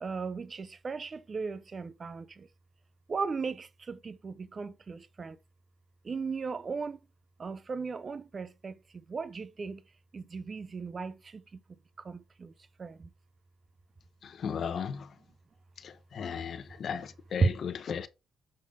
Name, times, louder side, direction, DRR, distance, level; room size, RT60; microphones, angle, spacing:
voice 1, 0.0-2.5 3.1-5.4 6.0-7.0 7.4-8.8 9.1-9.8 10.1-11.4 12.0-12.5 12.8-13.1 17.4-17.5, right 4 dB, 35° right, 0.5 m, -35 dB
voice 2, 14.2-15.1 15.8-18.1, left 7 dB, 55° left, 0.8 m, -36 dB
6.6 x 5.3 x 3.6 m
cardioid pair, 90°, 0 cm